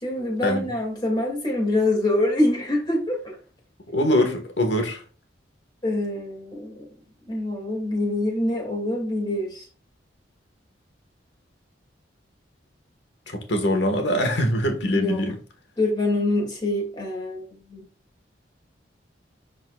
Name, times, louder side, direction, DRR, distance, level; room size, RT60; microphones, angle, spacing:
voice 1, 0.0-3.3 5.8-6.9 7.3-9.6 14.9-15.2 15.8-17.4 17.7-17.8, left 1 dB, 25° left, 2.3 m, -25 dB
voice 2, 3.9-5.0 13.3-15.4, left 1 dB, 65° left, 1.5 m, -23 dB
11.0 x 4.0 x 2.4 m
head